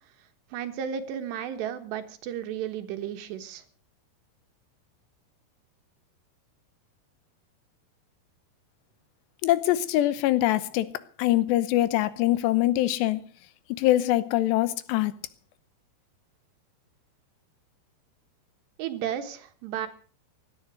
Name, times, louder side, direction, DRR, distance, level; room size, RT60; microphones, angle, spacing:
voice 1, 0.5-3.6 18.8-19.9, right 9 dB, 85° right, 3.6 m, -33 dB
voice 2, 9.4-10.9 11.2-13.2 13.7-15.1, left 15 dB, 85° left, 3.1 m, -23 dB
17.0 x 12.0 x 6.2 m
omnidirectional pair, 4.8 m